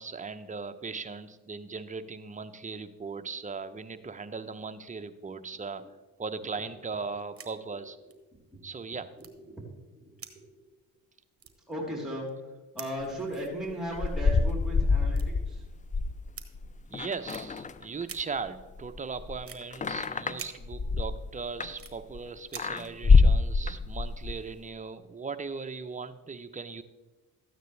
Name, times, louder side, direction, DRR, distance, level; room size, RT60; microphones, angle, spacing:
voice 1, 0.0-5.8 6.2-8.0 8.6-9.1 16.9-26.8, right 4 dB, 20° right, 9 dB, 0.7 m, -38 dB
sound 1, 6.9-7.5 7.8-7.9 8.1-8.2 9.2-9.7 10.2-11.0 11.4-12.5 12.8-13.0 14.2-14.3 15.0-15.9 16.3-16.5 17.2-17.4 18.0-18.2 19.4-19.6 20.3-20.5 21.1-21.9 22.5-22.9, right 7 dB, 35° right, 1.3 m, -46 dB
voice 2, 9.2-9.6 10.0-10.4 11.7-12.3 12.7-15.6, equal, ahead, -2 dB, 3.6 m, -37 dB
sound 2, 13.7-18.2 18.5-22.2 22.6-24.4, left 4 dB, 20° left, 0.5 m, -26 dB
13.5 x 9.1 x 3.3 m, 1.1 s
supercardioid pair, 65°, 37 cm